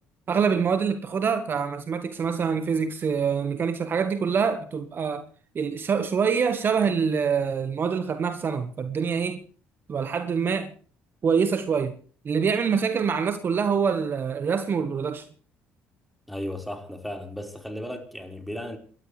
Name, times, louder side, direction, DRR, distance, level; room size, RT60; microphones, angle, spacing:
voice 1, 0.3-5.3 5.5-9.4 9.9-10.7 11.2-12.0 12.2-15.3, right 6 dB, 45° right, 1.3 m, -25 dB
voice 2, 16.3-18.8, left 1 dB, ahead, 4.6 m, -35 dB
27.5 x 13.0 x 3.3 m
hypercardioid pair, 65°, 5 cm